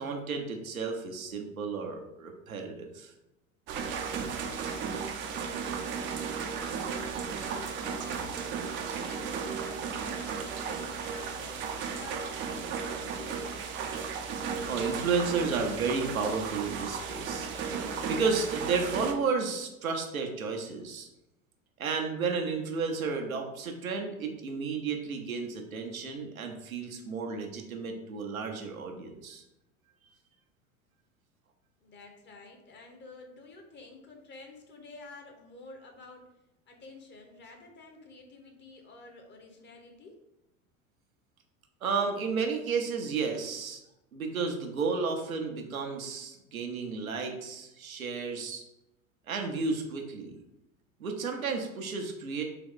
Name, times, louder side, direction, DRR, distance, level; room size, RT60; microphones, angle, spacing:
voice 1, 0.0-3.1 14.7-17.5 17.7-21.1 21.8-29.4 41.8-43.8 44.1-48.6 49.3-50.3 51.0-52.4, right 4 dB, 85° right, 3 dB, 0.7 m, -32 dB
sound 1, 3.7-19.1, right 6 dB, 30° right, 0.4 m, -35 dB
voice 2, 4.5-7.1 7.5-11.6 12.0-14.1 31.8-36.3 36.7-40.2, left 3 dB, 25° left, 3 dB, 0.9 m, -50 dB
3.9 x 3.0 x 3.6 m, 0.90 s
figure-of-eight pair, 80°, 41 cm